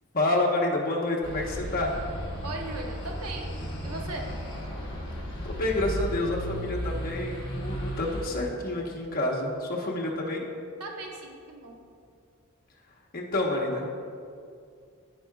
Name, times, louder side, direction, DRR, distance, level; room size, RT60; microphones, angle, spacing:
voice 1, 0.1-1.9 5.4-10.5 13.1-13.9, left 2 dB, 45° left, -2 dB, 1.1 m, -28 dB
Holborn - Holborn Circus Ambience and church bell, 1.2-8.3, equal, 25° left, 1.8 m, -35 dB
voice 2, 2.4-3.5 3.8-4.3 10.8-11.8, right 2 dB, 85° right, 1 dB, 0.9 m, -38 dB
14.0 x 4.8 x 2.3 m, 2.3 s
head